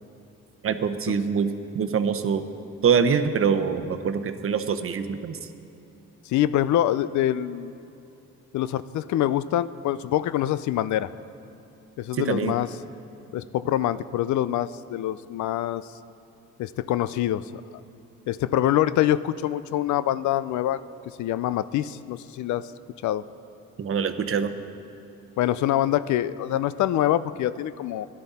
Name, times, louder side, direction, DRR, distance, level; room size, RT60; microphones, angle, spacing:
voice 1, 0.6-2.4 2.8-5.5 12.1-12.5 23.8-24.6, right 6 dB, 45° right, 9 dB, 0.8 m, -24 dB
voice 2, 6.3-7.7 8.5-11.1 12.0-12.7 13.3-15.9 16.6-17.4 18.3-20.8 21.2-22.7 23.0-23.2 25.4-28.1, left 12 dB, 70° left, 15 dB, 0.5 m, -25 dB
17.0 x 11.5 x 4.2 m, 2.9 s
cardioid pair, 90°, 30 cm